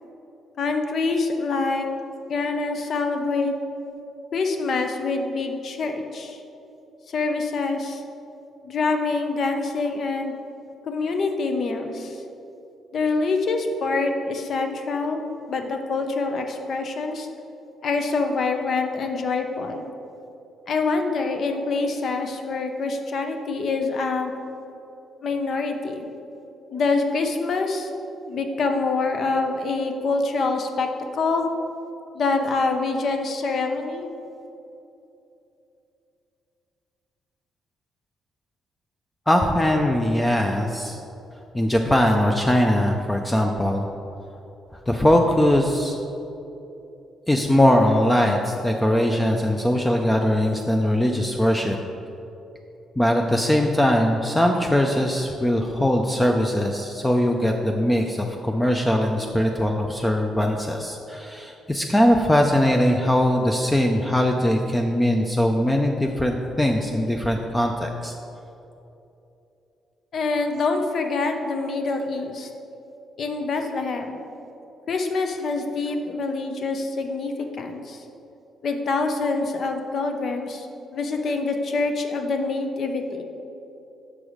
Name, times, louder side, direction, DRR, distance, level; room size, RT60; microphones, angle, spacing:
voice 1, 0.6-1.9 2.3-3.5 4.3-6.4 7.1-8.0 8.6-10.3 10.8-12.2 12.9-15.2 15.5-17.3 17.8-19.8 20.7-24.3 25.2-26.1 26.7-27.9 28.3-30.9 31.1-31.5 32.1-34.1 70.1-72.5 73.2-74.2 74.9-78.0 78.6-83.2, left 3 dB, 55° left, 5 dB, 0.7 m, -25 dB
voice 2, 39.3-41.0 41.5-43.8 44.9-46.0 47.3-51.8 53.0-68.1, left 1 dB, 10° left, 2 dB, 0.4 m, -21 dB
6.2 x 4.7 x 5.0 m, 2.9 s
cardioid pair, 90°, 0 cm